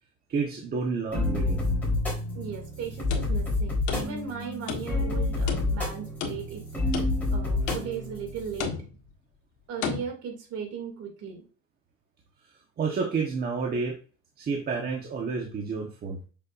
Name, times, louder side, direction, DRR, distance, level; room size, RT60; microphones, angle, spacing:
voice 1, 0.3-1.6 12.8-13.9 14.4-16.2, right 5 dB, 30° right, -1 dB, 1.3 m, -30 dB
sound 1, 1.1-8.6, left 2 dB, 5° left, 3.9 m, -29 dB
voice 2, 2.3-6.6 7.3-8.8 9.7-11.4, right 6 dB, 55° right, 2 dB, 2.7 m, -37 dB
sound 2, 2.9-4.4 4.7-5.2 5.5-6.6 6.9-7.4 7.7-8.1 8.6-9.1 9.8-10.0, left 6 dB, 70° left, 1.8 m, -34 dB
7.0 x 6.5 x 2.6 m, 0.36 s
cardioid pair, 155°, 30 cm